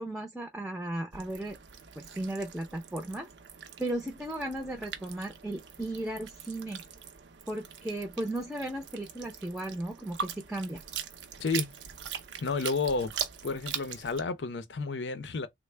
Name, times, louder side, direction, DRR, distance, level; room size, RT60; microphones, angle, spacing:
voice 1, 0.0-1.6 2.0-3.3 3.8-6.8 7.5-10.8, right 1 dB, 5° right, 0.5 m, -35 dB
sound 1, 1.1-14.2, right 7 dB, 85° right, 0.6 m, -42 dB
voice 2, 11.4-11.8 12.4-13.1 13.4-15.5, left 4 dB, 85° left, 0.6 m, -31 dB
3.3 x 2.1 x 3.2 m
head